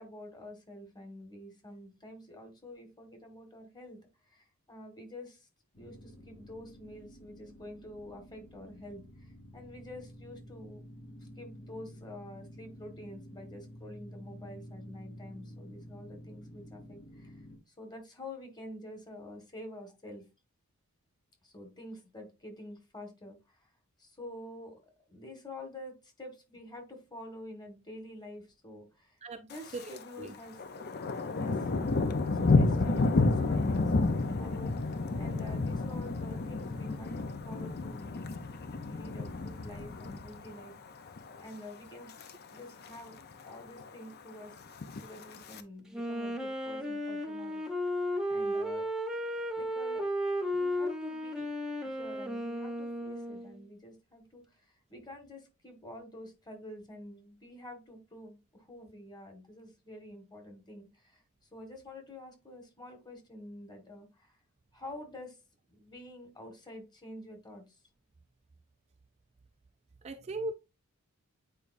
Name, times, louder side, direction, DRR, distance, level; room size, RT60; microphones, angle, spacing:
voice 1, 0.0-5.5 5.7-10.8 11.2-20.3 21.4-23.7 24.0-24.8 25.1-30.6 31.3-31.7 32.3-38.3 38.7-40.8 41.0-41.1 41.4-42.2 42.5-43.2 43.5-44.6 45.0-47.7 48.3-48.9 49.6-50.1 50.5-51.5 51.8-61.2 61.5-64.4 64.7-65.4 65.7-67.8, left 1 dB, 20° left, 1.6 m, -48 dB
sound 1, 5.7-17.6, equal, 65° left, 3.0 m, -50 dB
Thunder, 29.5-30.0 30.3-40.7 41.1-41.4 41.9-42.3 42.6-42.7 42.8-42.9 43.3-43.9 44.7-45.6, left 3 dB, 45° left, 0.6 m, -30 dB
voice 2, 29.7-30.3 32.9-33.0 35.1-35.5 70.0-70.5, right 2 dB, 30° right, 0.4 m, -39 dB
Wind instrument woodwind instrument, 45.9-53.6, equal, 5° right, 0.9 m, -34 dB
8.7 x 4.7 x 2.6 m
head